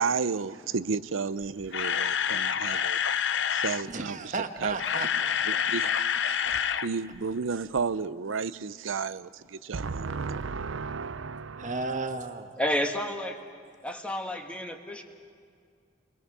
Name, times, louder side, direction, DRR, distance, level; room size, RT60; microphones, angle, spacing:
voice 1, 0.0-3.0 3.5-4.2 4.6-4.8 5.5-5.9 6.3-6.4 6.8-11.8, right 5 dB, 90° right, 0.6 m, -32 dB
Camera, 1.4-3.8 4.6-6.9 7.1-7.3 7.8-7.9, left 8 dB, 65° left, 0.7 m, -27 dB
voice 2, 3.9-5.6 11.6-12.5, right 3 dB, 40° right, 1.4 m, -34 dB
voice 3, 12.6-13.4 13.8-15.0, equal, 5° left, 1.4 m, -30 dB
29.0 x 22.5 x 6.2 m
head